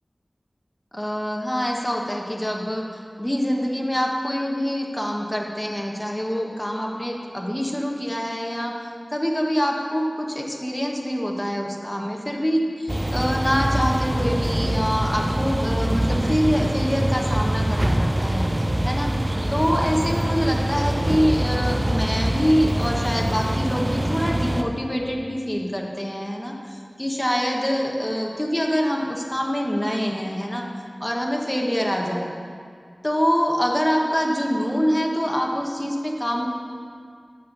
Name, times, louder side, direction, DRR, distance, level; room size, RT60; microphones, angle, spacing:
voice 1, 0.9-2.8 3.2-8.7 9.1-19.1 19.5-30.6 31.0-32.3 33.0-36.5, equal, 15° left, 0 dB, 1.2 m, -25 dB
sound 1, 12.9-24.6, right 1 dB, 35° right, 0.6 m, -24 dB
10.5 x 4.4 x 7.0 m, 2.1 s
wide cardioid pair, 45°, 0 cm